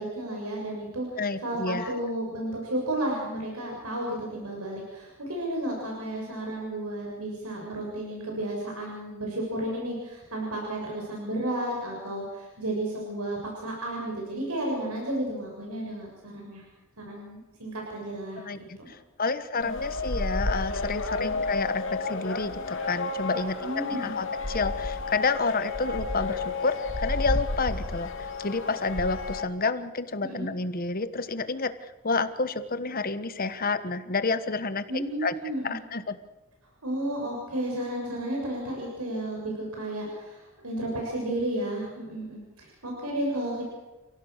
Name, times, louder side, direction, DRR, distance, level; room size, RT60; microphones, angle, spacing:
voice 1, 0.0-16.6 17.0-18.4 18.8-18.9 19.5-19.7 21.1-21.3 23.6-24.1 30.2-30.5 34.9-35.7 36.8-43.6, right 1 dB, 85° right, -1 dB, 6.9 m, -32 dB
voice 2, 1.2-1.9 18.4-35.3 35.6-36.1, left 4 dB, 40° left, 12 dB, 1.3 m, -30 dB
sound 1, 19.6-29.4, left 3 dB, 60° left, 2.6 m, -31 dB
30.0 x 17.0 x 6.6 m, 1.1 s
head